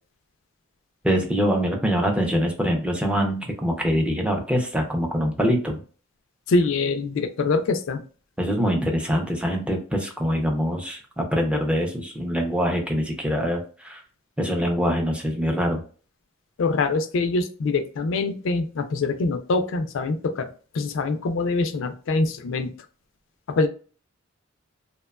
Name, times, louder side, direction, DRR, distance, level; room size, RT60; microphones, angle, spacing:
voice 1, 1.0-5.8 8.4-14.0 14.4-15.8, equal, 5° right, 2 dB, 0.5 m, -24 dB
voice 2, 6.5-8.0 16.6-20.5 20.7-22.7 23.5-23.7, left 3 dB, 70° left, 8 dB, 0.4 m, -24 dB
2.8 x 2.2 x 2.2 m, 0.39 s
head